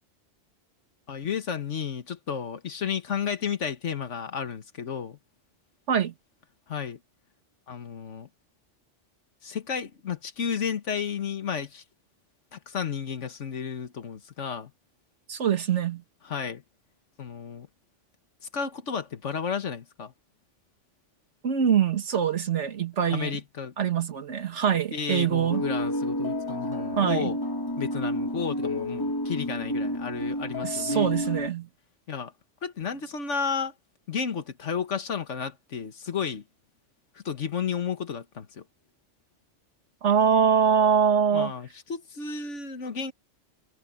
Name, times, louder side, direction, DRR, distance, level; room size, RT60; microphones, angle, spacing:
voice 1, 1.1-5.2 6.7-7.0 7.7-8.3 9.4-11.8 12.5-14.7 16.2-16.6 17.2-17.7 18.5-20.1 23.1-23.7 24.7-27.4 27.8-31.1 32.1-32.3 32.6-33.7 34.1-36.4 37.1-38.7 41.3-43.1, left 6 dB, 90° left, 1.7 m, -32 dB
voice 2, 15.3-16.0 21.4-23.4 23.8-25.6 26.9-27.3 30.6-31.7 40.0-41.5, right 7 dB, 80° right, 1.7 m, -24 dB
sound 1, 25.5-31.5, left 1 dB, 20° left, 1.5 m, -30 dB
omnidirectional pair, 1.2 m